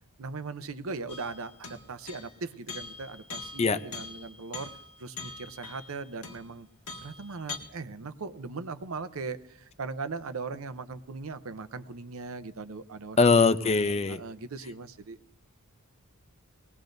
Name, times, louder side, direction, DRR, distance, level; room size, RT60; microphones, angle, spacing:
voice 1, 0.2-6.7 7.0-13.7 14.1-15.2, right 4 dB, 70° right, 12 dB, 0.7 m, -39 dB
sound 1, 1.1-2.4 2.7-6.6 6.9-7.6, left 4 dB, 75° left, 1.7 m, -43 dB
voice 2, 13.2-14.2, left 4 dB, 30° left, 12 dB, 0.5 m, -22 dB
20.5 x 17.5 x 2.6 m, 0.79 s
head